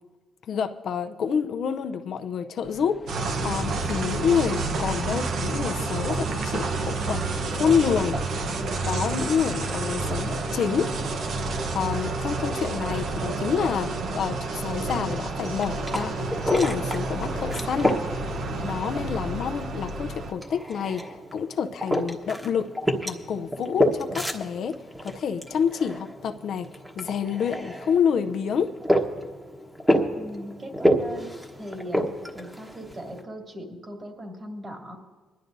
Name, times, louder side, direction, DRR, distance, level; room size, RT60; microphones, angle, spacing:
voice 1, 0.5-8.2 8.9-11.0 11.7-16.2 16.5-18.0 18.6-22.7 23.0-26.7 27.0-28.7, left 7 dB, 65° left, 8 dB, 0.6 m, -28 dB
tokui seville bus station, 2.6-19.4, left 3 dB, 25° left, 0.9 m, -46 dB
sound 1, 3.1-20.3, right 3 dB, 65° right, 1.0 m, -29 dB
sound 2, 15.4-33.2, equal, 5° right, 1.3 m, -30 dB
voice 2, 30.2-31.3 31.6-32.1 32.3-35.0, equal, 30° right, 1 dB, 2.5 m, -39 dB
22.5 x 11.0 x 2.7 m, 1.3 s
cardioid pair, 90°, 0 cm